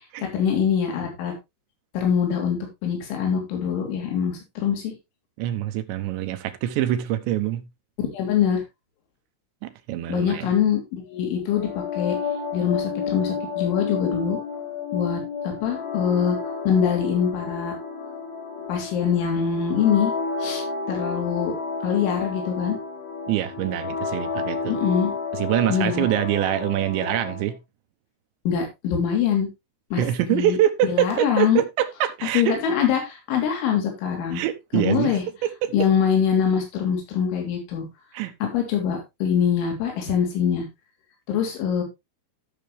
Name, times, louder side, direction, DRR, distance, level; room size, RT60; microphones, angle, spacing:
voice 1, 0.2-1.3 1.9-4.9 8.0-8.6 10.1-11.7 12.0-12.2 12.5-14.4 14.9-16.4 16.7-17.8 18.7-20.1 20.4-21.5 21.8-22.8 24.7-25.1 25.7-26.1 28.5-29.5 29.9-30.6 30.8-31.6 32.3-34.4 34.7-35.2 35.7-37.9 38.4-40.7 41.3-41.8, left 8 dB, 70° left, 5.6 m, -23 dB
voice 2, 5.4-7.6 9.6-10.5 23.3-24.7 25.4-27.6 30.0-32.6 34.3-35.7 38.1-38.3, right 12 dB, 75° right, 3.0 m, -25 dB
sound 1, 11.5-27.4, left 5 dB, 90° left, 7.1 m, -31 dB
14.5 x 6.6 x 3.2 m
omnidirectional pair, 5.7 m